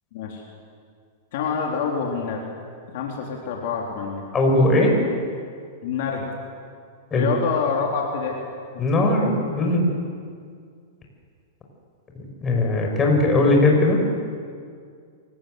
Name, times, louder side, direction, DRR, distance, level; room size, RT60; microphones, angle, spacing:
voice 1, 0.1-0.4 1.3-2.4 2.9-4.2 5.8-6.3 7.1-8.4, left 6 dB, 60° left, -1 dB, 3.8 m, -26 dB
voice 2, 4.3-4.9 7.1-7.3 8.8-9.8 12.4-14.0, left 2 dB, 20° left, 1 dB, 6.3 m, -19 dB
25.5 x 19.0 x 8.0 m, 2.2 s
hypercardioid pair, 125°, 0 cm